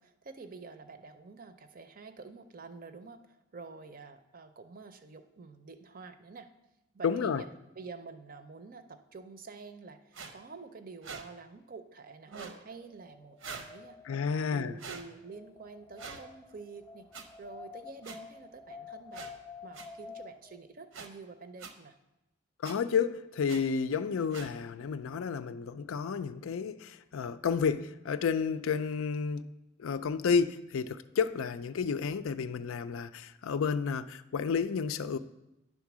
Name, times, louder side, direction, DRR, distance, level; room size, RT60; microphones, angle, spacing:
voice 1, 0.0-6.5 6.9-7.5 7.8-12.3 12.6-14.0 14.3-17.1 17.4-19.2 19.6-22.0, right 4 dB, 45° right, 0.5 m, -48 dB
voice 2, 7.0-7.4 14.1-14.7 22.6-29.4 29.8-35.2, left 6 dB, 85° left, 0.4 m, -31 dB
sound 1, 10.1-10.3 11.0-11.2 12.3-12.6 13.4-13.7 14.8-15.0 16.0-16.2 17.1-17.2 18.0-18.2 19.1-19.3 19.7-19.9 20.9-21.1 21.6-21.7 22.6-22.8 23.5-23.6 24.3-24.5, right 5 dB, 80° right, 0.8 m, -43 dB
Wind, 12.7-20.6, left 5 dB, 10° left, 0.7 m, -50 dB
10.0 x 3.7 x 6.0 m
head